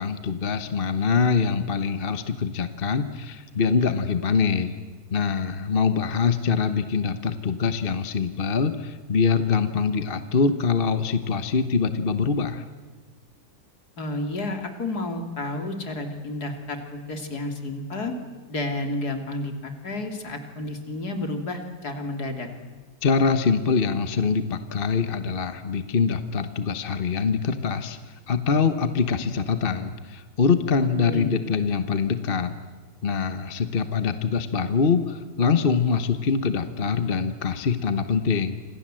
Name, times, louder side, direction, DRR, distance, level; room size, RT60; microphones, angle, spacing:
voice 1, 0.0-4.7 5.1-12.6 23.0-28.0 28.3-32.6 33.0-38.6, left 5 dB, 35° left, 10 dB, 1.2 m, -24 dB
voice 2, 14.0-18.1 18.5-22.5 31.0-31.3, left 2 dB, 60° left, 5 dB, 3.4 m, -31 dB
27.5 x 26.5 x 7.7 m, 1.4 s
omnidirectional pair, 1.9 m